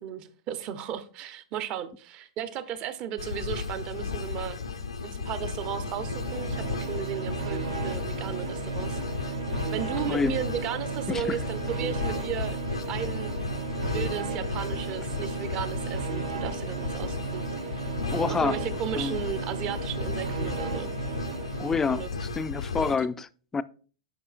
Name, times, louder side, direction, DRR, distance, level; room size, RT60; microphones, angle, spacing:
voice 1, 0.0-4.6 5.0-9.4 9.7-12.6 12.9-13.3 13.9-17.9 18.3-20.9 21.9-22.1 22.8-23.1, right 9 dB, 40° right, 0.8 m, -35 dB
sound 1, 3.2-22.9, left 5 dB, 90° left, 0.7 m, -34 dB
sound 2, 5.3-22.2, right 5 dB, 75° right, 1.0 m, -35 dB
voice 2, 11.1-11.4 18.1-18.6 19.0-19.2 21.6-23.6, left 5 dB, 15° left, 0.4 m, -28 dB
9.7 x 5.4 x 2.5 m
hypercardioid pair, 105°, 3 cm